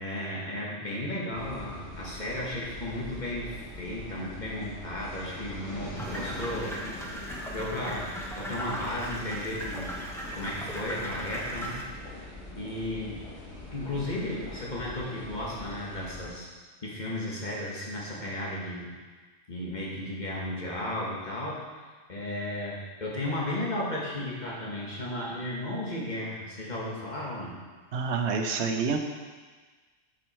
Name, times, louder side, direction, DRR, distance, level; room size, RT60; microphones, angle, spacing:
voice 1, 0.0-6.8 7.5-10.0 10.3-11.8 12.6-13.2 13.7-16.5 16.8-18.9 19.5-21.7 22.1-27.6, left 1 dB, 35° left, -4 dB, 1.7 m, -34 dB
sound 1, 1.3-16.3, left 1 dB, 60° left, 2.4 m, -42 dB
sound 2, 6.0-11.8, right 1 dB, 5° left, 0.7 m, -38 dB
voice 2, 27.9-29.0, right 5 dB, 65° right, 5 dB, 1.0 m, -27 dB
7.8 x 6.3 x 4.4 m, 1.4 s
omnidirectional pair, 1.3 m